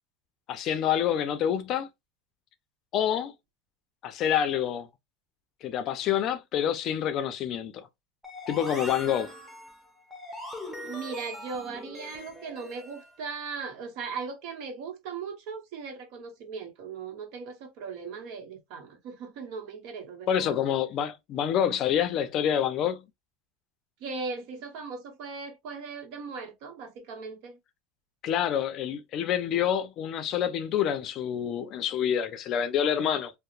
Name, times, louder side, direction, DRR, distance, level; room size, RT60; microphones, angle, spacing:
voice 1, 0.5-1.9 2.9-3.3 4.0-4.9 5.6-7.9 8.5-9.3 20.3-23.0 28.2-33.3, left 9 dB, 50° left, 0.4 m, -27 dB
sound 1, 8.2-13.1, left 1 dB, ahead, 0.8 m, -41 dB
voice 2, 10.8-20.6 24.0-27.6, right 5 dB, 65° right, 0.9 m, -38 dB
2.8 x 2.0 x 2.4 m
supercardioid pair, 115°, 0 cm